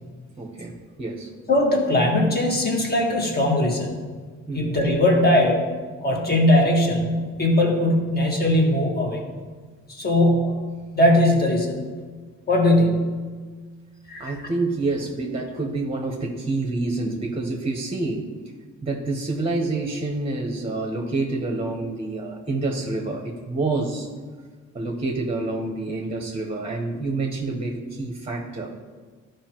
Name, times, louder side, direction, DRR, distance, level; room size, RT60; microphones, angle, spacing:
voice 1, 0.4-0.7 1.0-1.3 4.5-4.7 14.2-18.2 18.8-24.1 24.7-28.7, right 3 dB, 20° right, 1 dB, 1.1 m, -27 dB
voice 2, 1.5-4.0 4.5-5.7 6.0-9.2 9.9-10.6 10.9-11.7 12.5-13.1 14.1-14.4, left 1 dB, 30° left, 0 dB, 1.8 m, -20 dB
12.0 x 5.1 x 3.0 m, 1.5 s
cardioid pair, 90°, 30 cm